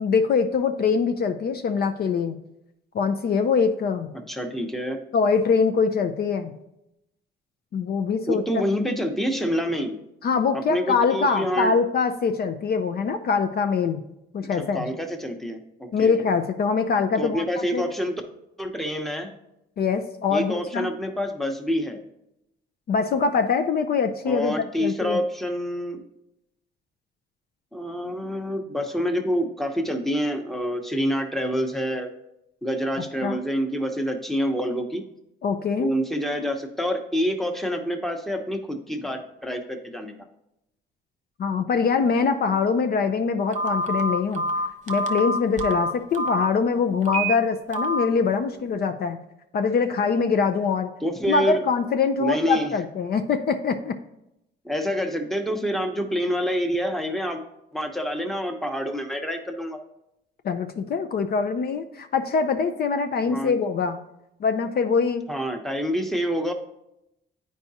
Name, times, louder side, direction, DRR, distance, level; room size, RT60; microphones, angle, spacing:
voice 1, 0.0-2.3 2.9-4.1 5.1-6.5 7.7-8.4 10.2-14.0 14.3-14.8 15.9-17.4 17.7-17.8 19.8-20.9 22.9-25.2 33.2-33.4 35.4-35.9 41.4-44.4 44.9-49.2 49.5-50.9 51.3-53.9 60.4-64.0 64.4-65.2, left 5 dB, 50° left, 7 dB, 0.5 m, -23 dB
voice 2, 4.1-5.0 8.3-10.0 10.5-11.7 14.6-16.2 17.2-18.2 18.6-19.3 20.3-22.0 24.2-26.0 27.7-32.1 32.6-35.0 35.8-40.1 51.0-51.6 52.2-52.7 54.6-57.4 57.7-59.8 63.3-63.6 65.3-66.5, equal, ahead, 4 dB, 0.9 m, -27 dB
Telephone, 43.5-46.5 47.0-47.3 47.7-48.1, right 1 dB, 40° right, 0.7 m, -26 dB
9.3 x 4.7 x 2.8 m, 0.85 s
cardioid pair, 90°, 20 cm